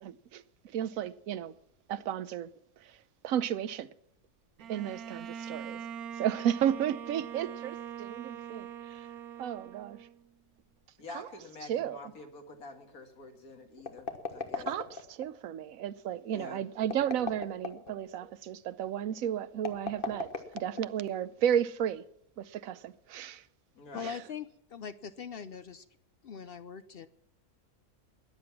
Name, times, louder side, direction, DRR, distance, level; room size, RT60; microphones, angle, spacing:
voice 1, 0.0-1.5 1.9-2.5 2.8-2.9 3.2-3.9 4.7-5.8 6.2-9.1 9.4-10.0 11.1-11.3 11.7-12.0 14.5-20.3 20.5-22.0 22.4-23.4 24.0-24.2, right 10 dB, 70° right, 1.1 m, -33 dB
Bowed string instrument, 4.6-10.3, right 8 dB, 85° right, 1.3 m, -42 dB
voice 2, 11.0-14.7 16.3-16.6 23.8-24.1, left 3 dB, 80° left, 2.3 m, -47 dB
sound 1, 13.8-15.3 16.8-17.9 19.6-21.1, left 4 dB, 40° left, 1.4 m, -37 dB
voice 3, 23.9-25.8 26.2-27.1, left 7 dB, 55° left, 0.7 m, -41 dB
20.5 x 7.9 x 5.9 m
omnidirectional pair, 1.5 m